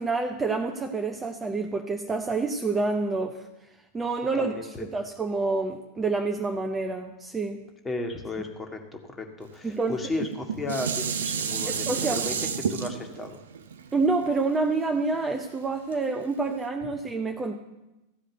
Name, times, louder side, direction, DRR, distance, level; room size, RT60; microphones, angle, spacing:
voice 1, 0.0-3.5 3.9-4.5 4.9-7.6 9.6-10.0 11.7-12.2 13.9-17.6, right 3 dB, 15° right, 4 dB, 0.7 m, -28 dB
voice 2, 4.3-4.8 7.8-8.8 9.2-12.4 12.7-13.3, left 2 dB, 15° left, 4 dB, 1.6 m, -34 dB
Dishes pots and pans, 10.1-15.4 15.9-16.0, right 7 dB, 65° right, 0.7 m, -31 dB
14.5 x 5.0 x 8.0 m, 0.99 s
figure-of-eight pair, 90°, 0 cm